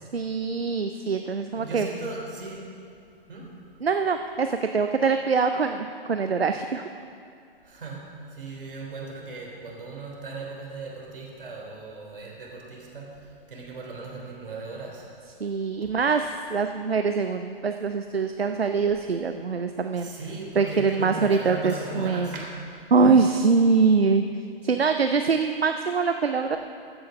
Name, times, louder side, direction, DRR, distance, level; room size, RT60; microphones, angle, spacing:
voice 1, 0.1-1.9 3.8-6.8 15.4-20.1 20.6-22.3 22.9-24.2 24.6-26.6, right 5 dB, 85° right, 7 dB, 0.6 m, -23 dB
voice 2, 1.5-2.6 3.3-3.5 7.6-8.0 8.3-13.1 13.5-15.1 20.0-22.5, right 3 dB, 60° right, -2 dB, 3.5 m, -37 dB
14.5 x 6.4 x 6.8 m, 2.4 s
figure-of-eight pair, 120°, 30 cm